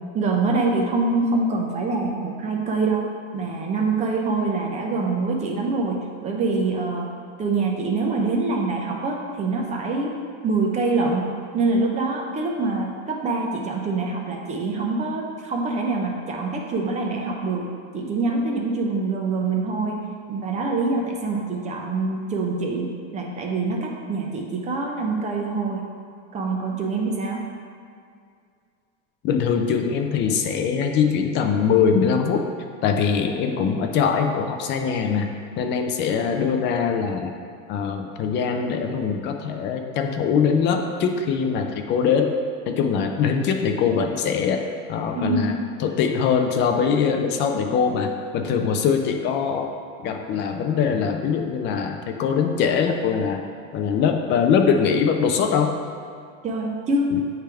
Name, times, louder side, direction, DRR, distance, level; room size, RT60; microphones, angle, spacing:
voice 1, 0.1-3.0 3.3-7.1 7.4-10.1 10.4-17.7 17.9-20.0 20.3-25.9 26.3-27.4 45.1-45.6 56.4-57.1, right 3 dB, 20° right, 0 dB, 0.6 m, -25 dB
voice 2, 29.2-32.4 32.8-35.3 35.6-37.4 37.7-42.3 42.7-44.6 44.9-45.5 45.8-49.7 50.0-53.4 53.7-55.8 57.1-57.2, left 6 dB, 30° left, 5 dB, 0.4 m, -22 dB
8.6 x 3.4 x 3.4 m, 2.3 s
supercardioid pair, 140°, 39 cm